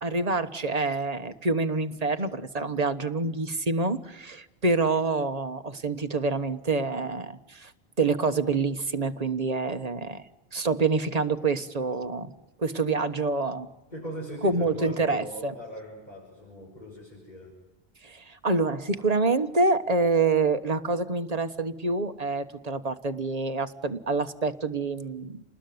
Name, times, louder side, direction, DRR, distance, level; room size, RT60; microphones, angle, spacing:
voice 1, 0.0-7.7 8.0-10.2 10.5-12.3 12.6-13.7 14.4-15.5 18.0-25.4, right 3 dB, 40° right, 8 dB, 1.4 m, -27 dB
voice 2, 13.9-17.6, equal, 45° left, -3 dB, 6.4 m, -40 dB
29.0 x 20.0 x 9.5 m, 1.1 s
omnidirectional pair, 1.1 m